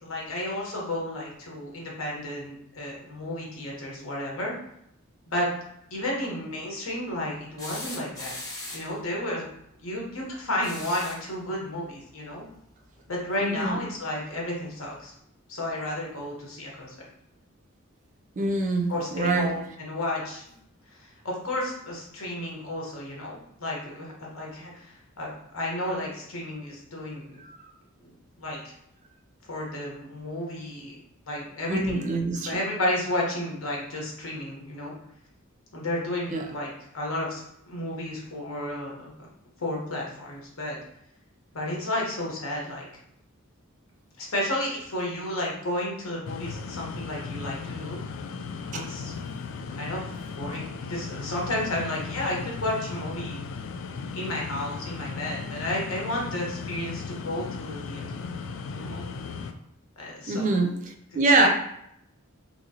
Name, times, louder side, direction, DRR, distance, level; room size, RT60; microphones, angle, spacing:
voice 1, 0.0-4.5 5.3-5.5 5.9-8.4 8.7-9.4 9.8-12.4 13.1-15.1 15.5-16.9 18.9-20.5 20.9-27.4 28.4-28.7 29.5-31.0 31.3-34.9 35.7-39.1 39.6-40.8 41.5-42.9 44.2-48.0 48.7-49.1 49.7-53.4 54.1-58.3 58.7-59.0 60.0-60.5 61.4-61.5, left 1 dB, 85° left, -2 dB, 1.0 m, -32 dB
sound 1, 7.6-9.0 10.5-11.3 13.0-13.1 14.5-14.6, left 2 dB, 15° left, 0.7 m, -39 dB
voice 2, 13.4-13.8 18.4-19.5 27.4-27.6 31.7-32.6 36.3-36.5 48.7-48.9 60.3-61.5, right 3 dB, 35° right, 3 dB, 0.4 m, -25 dB
sound 2, 46.3-59.5, left 5 dB, 65° left, 0.3 m, -36 dB
2.9 x 2.9 x 2.8 m, 0.76 s
head